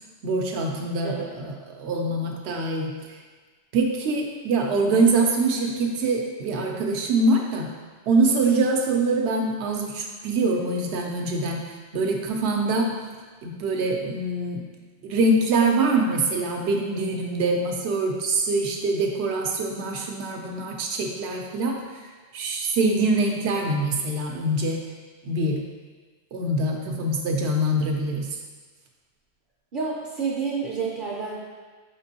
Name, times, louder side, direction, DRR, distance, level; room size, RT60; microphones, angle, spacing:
voice 1, 0.2-3.2 3.7-7.7 8.1-12.9 13.4-14.6 15.0-22.0 22.3-24.8 25.2-25.6 26.3-28.4, right 2 dB, 85° right, 1 dB, 0.9 m, -24 dB
voice 2, 29.7-31.3, right 5 dB, 55° right, -4 dB, 0.7 m, -29 dB
5.1 x 3.6 x 2.7 m, 1.4 s
omnidirectional pair, 1.1 m